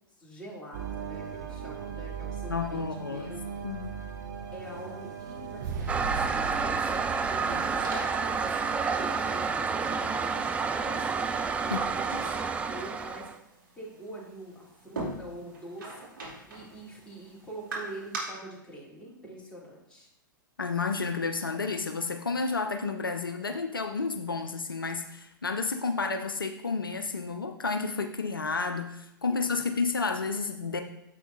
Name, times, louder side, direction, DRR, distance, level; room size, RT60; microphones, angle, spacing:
voice 1, 0.2-2.8 3.1-3.8 4.5-11.1 11.6-13.3 13.8-16.1 16.5-20.1 29.3-29.7, right 1 dB, 10° left, -5 dB, 2.9 m, -45 dB
sound 1, 0.7-10.1, right 6 dB, 50° right, 0.8 m, -39 dB
voice 2, 2.5-3.3 3.6-4.0 11.7-11.8 20.6-30.8, left 4 dB, 80° left, 6 dB, 0.6 m, -31 dB
Toilet flush, 5.9-13.4, right 5 dB, 10° right, 0.4 m, -29 dB
sound 2, 6.8-18.2, right 2 dB, 70° right, 2.5 m, -44 dB
9.1 x 7.5 x 2.6 m, 0.82 s
figure-of-eight pair, 100°, 11 cm